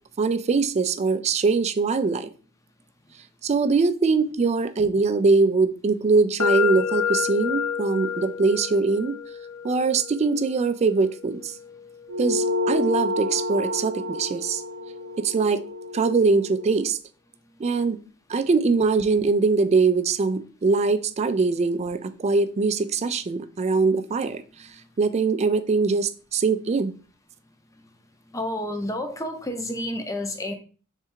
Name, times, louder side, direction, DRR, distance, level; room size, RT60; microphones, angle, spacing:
voice 1, 0.2-2.3 3.4-9.1 9.6-11.6 12.2-14.6 15.2-15.6 15.9-17.0 17.6-18.0 18.3-24.7 25.0-26.9, right 4 dB, 30° right, 11 dB, 0.3 m, -22 dB
sound 1, 6.4-14.3, left 8 dB, 90° left, 0.5 m, -31 dB
sound 2, 12.1-16.9, left 2 dB, 85° right, 0.6 m, -29 dB
voice 2, 28.3-30.5, left 1 dB, 15° left, 6 dB, 0.6 m, -30 dB
3.5 x 3.3 x 4.5 m, 0.39 s
head